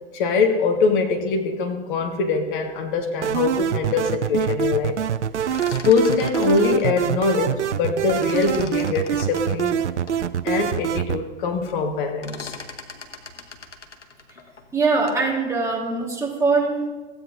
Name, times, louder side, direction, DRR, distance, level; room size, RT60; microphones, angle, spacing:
voice 1, 0.1-4.9 5.8-9.8 10.4-12.5, left 4 dB, 45° left, 4 dB, 1.5 m, -23 dB
sound 1, 3.2-11.2, right 9 dB, 80° right, 0.6 m, -25 dB
sound 2, 5.3-7.8 8.1-10.2 10.7-10.8 11.1-11.5 11.8-15.3, left 4 dB, 85° left, 1.3 m, -40 dB
voice 2, 14.7-16.9, right 3 dB, 10° right, -2 dB, 1.8 m, -22 dB
15.0 x 8.9 x 2.7 m, 1.3 s
figure-of-eight pair, 115°, 35 cm